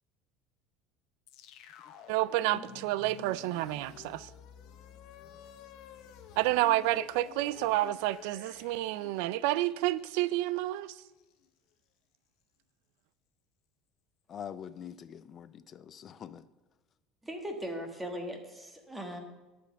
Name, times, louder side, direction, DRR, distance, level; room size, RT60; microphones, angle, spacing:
sound 1, 1.3-11.5, left 8 dB, 60° left, 0.9 m, -51 dB
voice 1, 2.1-4.3 6.4-11.0, right 16 dB, 75° right, 0.3 m, -29 dB
voice 2, 14.3-16.5, left 8 dB, 40° left, 0.5 m, -45 dB
voice 3, 17.2-19.2, equal, 10° right, 1.4 m, -39 dB
11.5 x 5.2 x 6.8 m
supercardioid pair, 115°, 0 cm